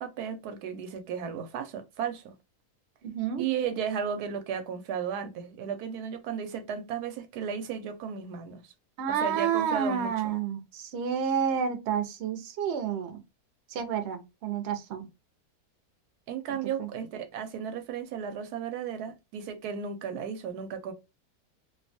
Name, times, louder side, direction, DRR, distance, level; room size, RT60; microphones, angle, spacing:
voice 1, 0.0-2.3 3.4-8.7 9.1-10.1 16.3-20.9, right 7 dB, 85° right, 1.1 m, -34 dB
voice 2, 3.0-3.4 9.0-13.2 13.7-15.1 16.8-16.9, right 7 dB, 60° right, 0.8 m, -30 dB
2.5 x 2.3 x 2.5 m
omnidirectional pair, 1.6 m